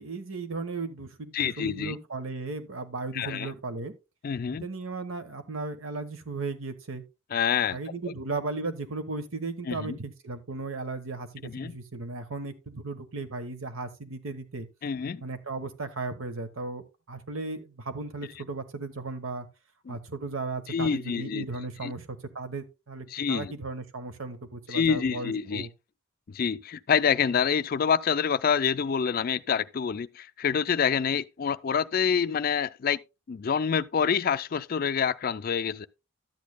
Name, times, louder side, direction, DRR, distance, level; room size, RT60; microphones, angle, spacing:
voice 1, 0.0-3.9 4.5-7.0 7.7-14.7 15.2-19.5 19.9-25.7, right 3 dB, 75° right, 1.1 m, -36 dB
voice 2, 1.3-1.9 3.1-3.5 4.2-4.7 7.3-7.8 9.7-10.0 11.4-11.7 14.8-15.2 19.9-20.0 20.7-21.4 21.8-21.9 23.1-23.5 24.7-25.7 26.3-33.0 33.3-35.9, left 7 dB, 45° left, 0.3 m, -27 dB
12.5 x 8.5 x 2.2 m
head